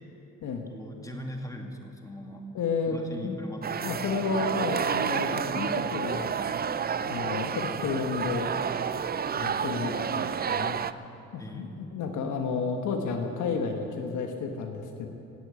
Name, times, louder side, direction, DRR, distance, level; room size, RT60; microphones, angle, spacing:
voice 1, 0.7-2.6 2.9-3.9 11.4-11.7, equal, 10° left, 2 dB, 2.2 m, -41 dB
voice 2, 2.5-3.0 3.2-3.4 3.8-6.3 7.0-8.5 9.3-10.8 11.3-15.1, left 5 dB, 75° left, 3 dB, 1.4 m, -31 dB
sound 1, 3.6-10.9, right 7 dB, 30° right, 0.5 m, -30 dB
16.5 x 8.4 x 9.1 m, 2.8 s
cardioid pair, 90°, 30 cm